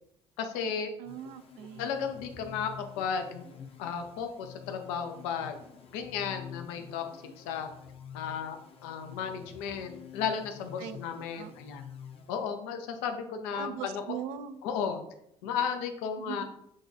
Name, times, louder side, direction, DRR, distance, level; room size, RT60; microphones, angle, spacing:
voice 1, 0.4-0.9 1.8-3.5 3.8-5.6 5.9-7.0 7.4-7.7 8.1-8.6 8.8-11.8 12.3-14.0 14.6-15.0 15.4-16.4, left 7 dB, 80° left, 6 dB, 0.5 m, -34 dB
sound 1, 1.0-12.8, left 7 dB, 40° left, 0.7 m, -48 dB
voice 2, 1.0-1.9 10.8-11.0 11.3-11.5 13.5-14.6 16.2-16.4, right 9 dB, 75° right, 11 dB, 0.4 m, -40 dB
6.3 x 2.3 x 2.7 m, 0.74 s
hypercardioid pair, 65°, 15 cm